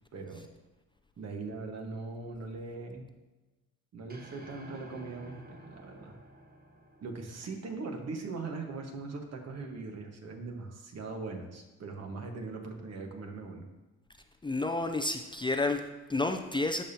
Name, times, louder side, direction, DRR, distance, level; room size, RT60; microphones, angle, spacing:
voice 1, 0.1-0.5 1.2-3.0 3.9-6.2 7.0-13.7, right 3 dB, 55° right, 3 dB, 1.5 m, -40 dB
sound 1, 4.1-8.5, right 1 dB, 30° right, 1.2 m, -53 dB
voice 2, 14.4-16.8, left 2 dB, 15° left, 5 dB, 0.5 m, -30 dB
13.5 x 5.4 x 2.9 m, 1.1 s
cardioid pair, 90°, 30 cm